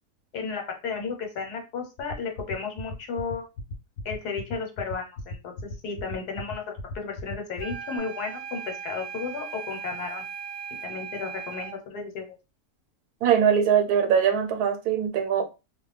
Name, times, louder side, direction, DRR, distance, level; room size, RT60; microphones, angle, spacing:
voice 1, 0.3-3.4 4.0-10.2 10.8-12.2, left 5 dB, 90° left, 1.4 m, -34 dB
sound 1, 2.0-8.0, left 1 dB, 75° left, 1.0 m, -35 dB
sound 2, 7.6-11.8, right 7 dB, 55° right, 0.8 m, -38 dB
voice 2, 13.2-15.5, right 8 dB, 80° right, 1.1 m, -22 dB
2.7 x 2.2 x 3.2 m
omnidirectional pair, 1.6 m